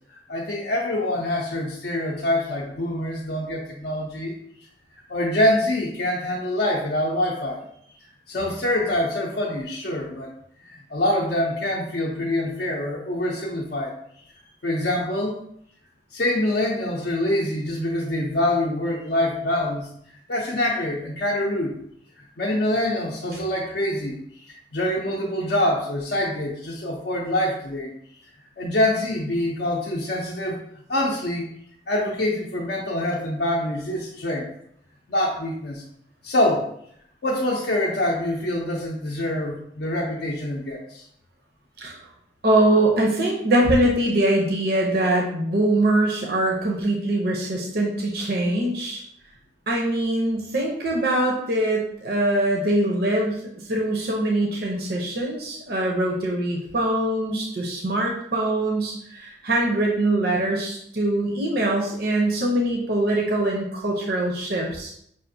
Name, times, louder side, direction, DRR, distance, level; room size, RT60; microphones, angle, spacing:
voice 1, 0.3-4.3 5.1-7.7 8.3-10.3 10.6-13.9 14.6-15.4 16.1-19.9 20.3-21.8 22.4-24.1 24.7-27.9 28.6-30.6 30.9-31.5 31.9-34.5 35.1-35.8 36.2-36.7 37.2-41.0, left 1 dB, 55° left, -4 dB, 0.5 m, -25 dB
voice 2, 42.4-49.0 49.7-53.4 53.7-64.9, right 1 dB, 55° right, -1 dB, 0.6 m, -23 dB
5.5 x 2.5 x 2.6 m, 0.69 s
head